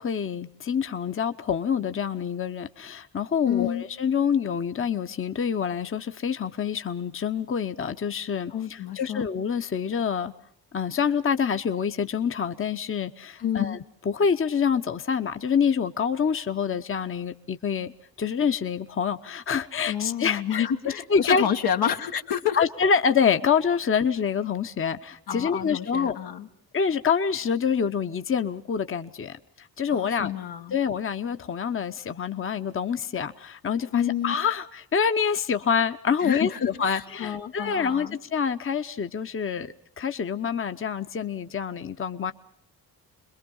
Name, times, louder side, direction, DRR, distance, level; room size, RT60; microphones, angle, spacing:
voice 1, 0.0-10.3 10.7-13.8 14.0-17.9 18.2-20.7 21.1-21.4 22.6-26.2 26.7-30.3 30.7-39.7 40.0-42.3, left 6 dB, 35° left, 0.9 m, -26 dB
voice 2, 3.4-3.8 8.5-9.3 13.4-13.8 19.9-22.6 25.3-26.5 29.9-30.8 33.9-34.3 36.2-38.2, left 9 dB, 85° left, 1.7 m, -29 dB
27.5 x 21.5 x 5.5 m
cardioid pair, 80°, 37 cm